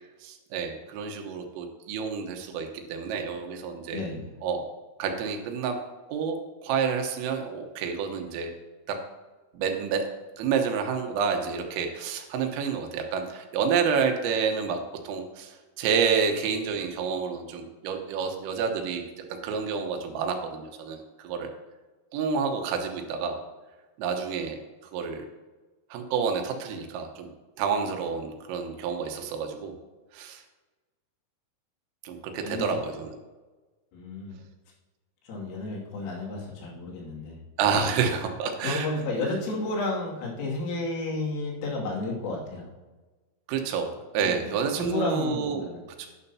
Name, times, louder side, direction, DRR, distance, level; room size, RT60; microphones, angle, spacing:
voice 1, 0.2-4.0 4.4-4.6 5.0-5.8 6.1-8.5 8.9-9.0 9.5-10.0 10.4-19.0 19.3-21.5 22.1-23.4 24.0-24.6 24.9-25.3 25.9-27.3 27.6-29.8 30.1-30.4 32.0-33.2 37.6-38.9 43.5-45.7 46.0-46.1, right 6 dB, 90° right, 4 dB, 3.8 m, -29 dB
voice 2, 3.9-4.3 32.3-32.8 33.9-34.4 35.2-37.4 38.6-42.7 44.2-45.8, left 2 dB, 85° left, -3 dB, 5.2 m, -32 dB
12.0 x 10.5 x 2.9 m, 1.2 s
omnidirectional pair, 5.8 m